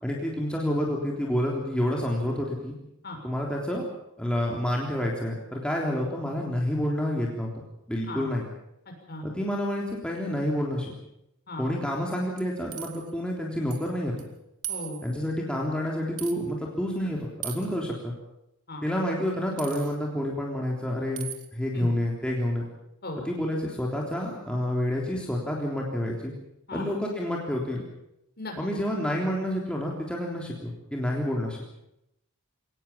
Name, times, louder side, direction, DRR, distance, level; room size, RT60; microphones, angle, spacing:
voice 1, 0.0-2.7 3.2-3.9 4.2-7.5 7.9-8.4 9.2-10.9 11.6-14.1 15.0-18.1 18.8-22.7 23.2-26.3 26.7-27.8 28.6-31.6, left 1 dB, 5° left, -2 dB, 3.5 m, -29 dB
sound 1, 12.4-13.1 13.7-13.9 14.2-14.3 14.6-15.3 16.2-16.4 17.4-17.8 19.6-19.9 21.2-21.5, right 11 dB, 75° right, 2.6 m, -38 dB
voice 2, 14.7-15.0 18.7-18.8 21.7-21.9 23.0-23.2 26.7-26.9 28.4-28.5, left 2 dB, 45° left, 2 dB, 6.8 m, -36 dB
23.0 x 19.0 x 7.2 m, 0.82 s
head